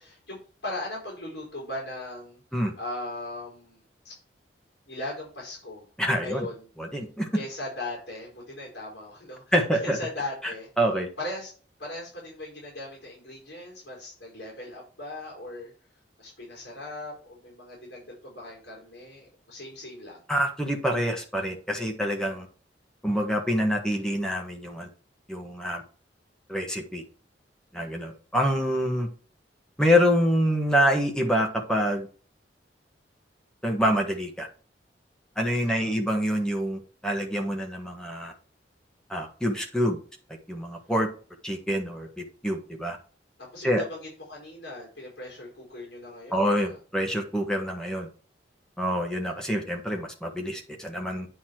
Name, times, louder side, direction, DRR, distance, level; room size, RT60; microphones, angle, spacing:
voice 1, 0.0-2.4 2.8-4.1 4.9-5.9 6.2-6.7 7.3-9.5 9.8-10.7 11.2-11.5 11.8-15.7 16.2-20.2 27.8-28.1 35.5-36.0 43.4-46.8, left 1 dB, 70° left, -3 dB, 4.7 m, -39 dB
voice 2, 6.0-6.5 6.8-7.3 9.5-10.0 10.8-11.1 20.3-22.5 23.0-24.9 25.3-25.8 26.5-27.0 27.7-29.1 29.8-32.1 33.6-34.5 35.4-38.3 39.1-40.0 40.5-41.1 41.4-43.0 43.6-43.8 46.3-48.1 48.8-51.3, equal, 5° left, 2 dB, 1.5 m, -26 dB
9.8 x 4.1 x 4.6 m, 0.39 s
head